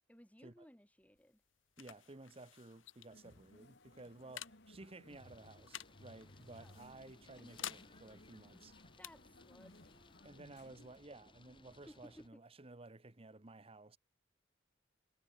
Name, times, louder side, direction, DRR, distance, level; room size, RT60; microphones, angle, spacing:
voice 1, 0.1-1.4 6.6-6.8 9.0-9.9 11.9-12.4, equal, 10° left, 2.0 m, -59 dB
sound 1, 1.0-12.3, left 10 dB, 90° left, 3.0 m, -54 dB
voice 2, 1.8-8.7 10.2-14.0, right 2 dB, 30° right, 1.0 m, -55 dB
sound 2, 3.1-11.0, left 1 dB, 60° left, 5.2 m, -62 dB
sound 3, 5.1-12.3, left 2 dB, 25° left, 2.5 m, -64 dB
head